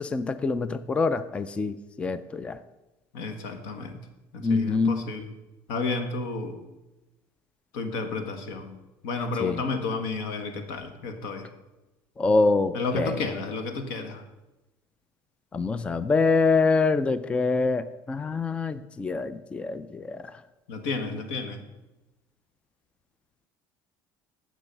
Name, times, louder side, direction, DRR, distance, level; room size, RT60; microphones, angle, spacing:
voice 1, 0.0-2.6 4.4-5.0 9.4-9.6 12.2-13.2 15.5-20.4, left 3 dB, 15° left, 14 dB, 0.3 m, -25 dB
voice 2, 3.1-4.0 4.3-5.3 5.7-6.5 7.7-8.7 9.0-11.5 12.7-14.2 20.7-21.6, left 3 dB, 90° left, 7 dB, 1.6 m, -31 dB
15.0 x 6.2 x 5.4 m, 1.0 s
cardioid pair, 155°, 9 cm